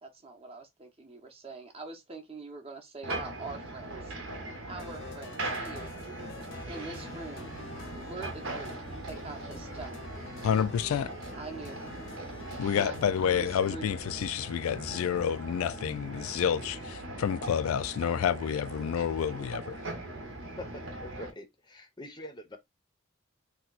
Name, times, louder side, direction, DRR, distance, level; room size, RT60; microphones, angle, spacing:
voice 1, 0.0-4.1 4.7-5.9 6.7-7.5 7.9-10.1 10.9-12.3 12.7-13.0 13.4-13.9, right 3 dB, 30° right, 0.7 m, -44 dB
sound 1, 3.0-21.3, right 2 dB, 80° right, 0.9 m, -40 dB
sound 2, 4.8-13.4, left 4 dB, 65° left, 0.7 m, -48 dB
sound 3, 6.2-16.7, right 3 dB, 60° right, 0.4 m, -55 dB
voice 2, 10.4-11.1 12.6-19.8, left 8 dB, 90° left, 0.3 m, -29 dB
voice 3, 20.6-21.5 21.7-22.6, left 1 dB, 20° left, 0.6 m, -44 dB
2.8 x 2.2 x 4.0 m
head